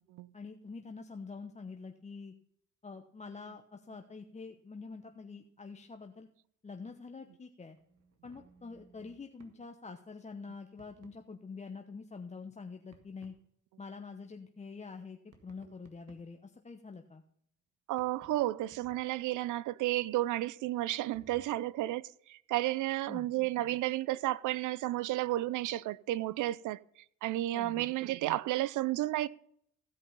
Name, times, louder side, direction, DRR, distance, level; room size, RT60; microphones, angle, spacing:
voice 1, 0.3-2.3 2.8-6.3 6.6-7.8 8.2-13.3 13.8-17.2 23.1-23.3 27.5-27.9, left 4 dB, 25° left, 0.9 m, -46 dB
sound 1, 7.8-9.6 10.8-11.2 12.9-13.4 15.3-16.4 17.9-19.2 21.1-21.4, right 3 dB, 55° right, 2.0 m, -61 dB
voice 2, 17.9-26.8 27.2-29.3, right 16 dB, 85° right, 0.5 m, -32 dB
16.0 x 5.3 x 5.5 m
cardioid pair, 90°, 30 cm